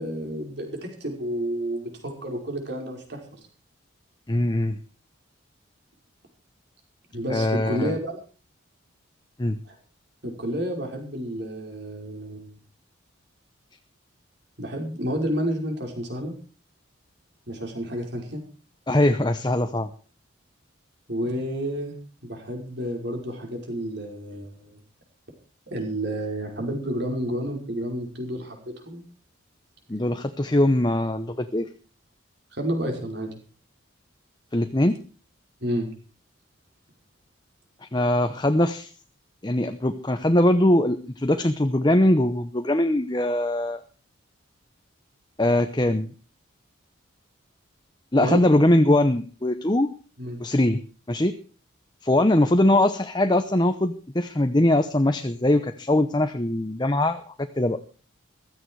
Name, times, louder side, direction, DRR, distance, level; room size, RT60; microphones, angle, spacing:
voice 1, 0.0-3.4 7.1-8.2 9.7-9.8 10.2-12.6 14.6-16.3 17.5-18.4 21.1-22.0 22.2-24.8 25.7-29.0 32.5-33.3 35.6-35.9 48.2-48.4 50.2-50.4, equal, 55° right, 2 dB, 5.4 m, -30 dB
voice 2, 4.3-4.8 7.3-7.9 9.4-9.6 18.9-19.9 29.9-31.7 34.5-35.0 37.8-38.9 39.4-43.8 45.4-46.1 48.1-49.9 50.4-50.8 51.1-51.4 52.0-57.8, left 1 dB, 20° left, 8 dB, 0.8 m, -21 dB
15.5 x 14.0 x 4.8 m, 0.37 s
head